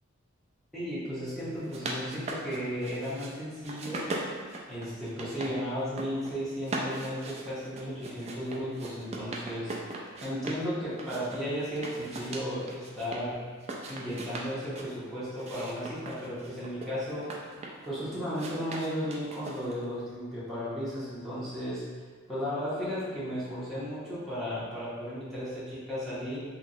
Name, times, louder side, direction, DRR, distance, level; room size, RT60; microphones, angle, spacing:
voice 1, 0.7-4.1 4.7-13.4 13.9-17.3 17.8-21.8 22.3-26.4, equal, ahead, -12 dB, 0.8 m, -35 dB
sound 1, 1.5-3.3 3.6-5.5 5.8-6.3 6.6-10.6 11.0-13.2 13.6-14.9 15.4-17.9 18.3-19.8, right 2 dB, 30° right, 0.3 m, -39 dB
2.9 x 2.9 x 2.6 m, 1.5 s
head